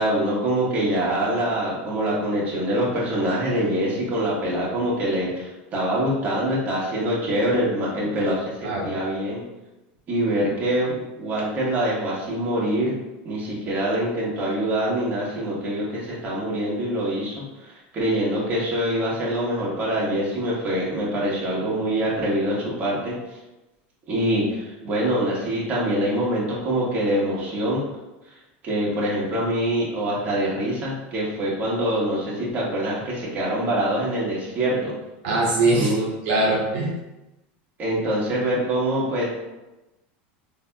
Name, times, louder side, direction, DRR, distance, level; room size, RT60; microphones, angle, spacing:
voice 1, 0.0-9.4 10.1-12.9 13.2-23.1 24.1-27.8 28.6-34.9 35.7-36.1 37.8-39.2, right 1 dB, 30° right, -6 dB, 1.2 m, -24 dB
voice 2, 8.6-8.9 35.2-35.9 36.2-36.9, right 2 dB, 70° right, -4 dB, 0.8 m, -21 dB
4.0 x 2.8 x 2.2 m, 1.0 s
supercardioid pair, 135°, 6 cm